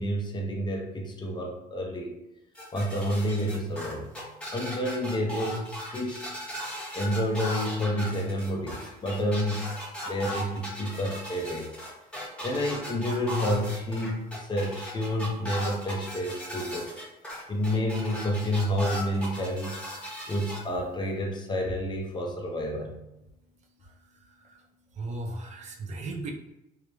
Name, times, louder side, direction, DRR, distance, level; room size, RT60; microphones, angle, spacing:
voice 1, 0.0-2.2 2.7-4.2 4.5-6.2 6.9-9.7 10.1-11.7 12.4-16.9 17.5-19.8 20.3-23.0, equal, 25° left, 2 dB, 0.4 m, -29 dB
sound 1, 2.6-20.6, equal, 5° left, 0.8 m, -37 dB
voice 2, 25.0-26.3, right 2 dB, 45° right, 1 dB, 0.4 m, -36 dB
2.3 x 2.0 x 2.9 m, 0.90 s
cardioid pair, 110°, 17 cm